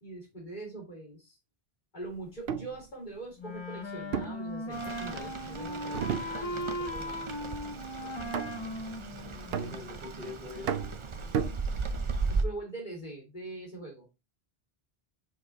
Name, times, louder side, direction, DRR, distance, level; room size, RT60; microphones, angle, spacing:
voice 1, 0.0-1.4 1.9-7.3 12.3-14.1, right 2 dB, 45° left, 3.2 m, -43 dB
sound 1, 2.3-2.8 4.1-5.2 5.9-6.8 7.1-7.5 8.3-8.8 9.5-10.2 10.7-12.1, right 8 dB, 75° right, 0.8 m, -34 dB
Wind instrument woodwind instrument, 3.4-10.0, left 1 dB, 30° left, 0.8 m, -38 dB
Rain, 4.7-12.5, right 4 dB, 35° right, 0.6 m, -37 dB
voice 2, 9.3-10.8, left 4 dB, 75° left, 2.6 m, -44 dB
5.3 x 4.7 x 3.9 m
omnidirectional pair, 1.0 m